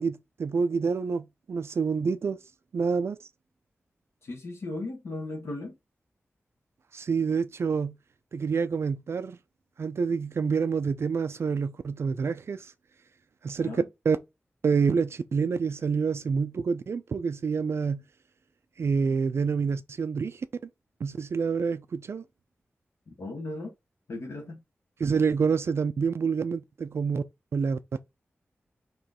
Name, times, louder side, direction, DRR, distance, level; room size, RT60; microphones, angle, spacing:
voice 1, 0.0-2.4 2.7-3.2 6.9-7.9 8.3-9.4 9.8-12.7 13.4-13.8 14.1-14.2 14.6-18.0 18.8-20.4 21.0-22.2 25.0-27.2 27.5-27.8, right 5 dB, 70° right, 0.4 m, -27 dB
voice 2, 4.2-5.7 13.6-13.8 23.2-23.7 24.1-24.6, left 2 dB, 75° left, 1.3 m, -36 dB
4.4 x 3.1 x 3.6 m
wide cardioid pair, 130°, 5 cm